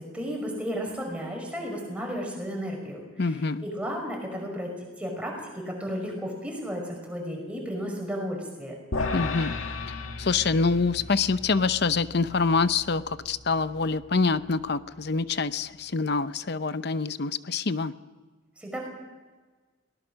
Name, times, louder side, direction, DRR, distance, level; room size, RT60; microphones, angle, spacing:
voice 1, 0.0-8.8 18.6-18.8, equal, 5° right, 0 dB, 5.6 m, -34 dB
voice 2, 3.2-3.6 9.1-9.6 10.2-17.9, left 4 dB, 55° left, 13 dB, 0.7 m, -26 dB
sound 1, 8.9-15.3, left 3 dB, 85° left, 2.1 m, -36 dB
22.5 x 19.0 x 6.3 m, 1.3 s
head